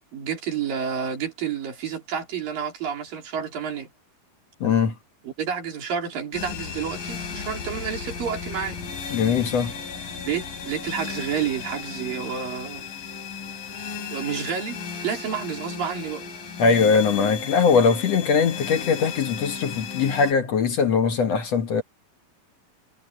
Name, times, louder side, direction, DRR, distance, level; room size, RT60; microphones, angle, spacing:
voice 1, 0.1-3.9 5.2-8.8 10.3-12.8 14.1-16.3, right 7 dB, 80° right, 5.3 m, -30 dB
voice 2, 4.6-4.9 9.1-9.8 16.6-21.8, left 5 dB, 55° left, 2.2 m, -21 dB
sound 1, 6.3-20.3, left 6 dB, 75° left, 4.6 m, -35 dB
omnidirectional pair, 4.0 m